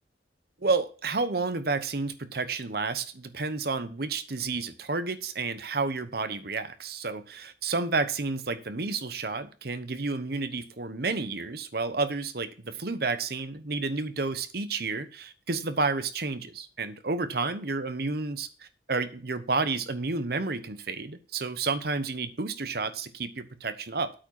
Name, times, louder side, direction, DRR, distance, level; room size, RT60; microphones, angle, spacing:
voice 1, 0.6-24.1, right 3 dB, 55° right, 11 dB, 1.0 m, -31 dB
8.7 x 4.9 x 7.5 m, 0.36 s
head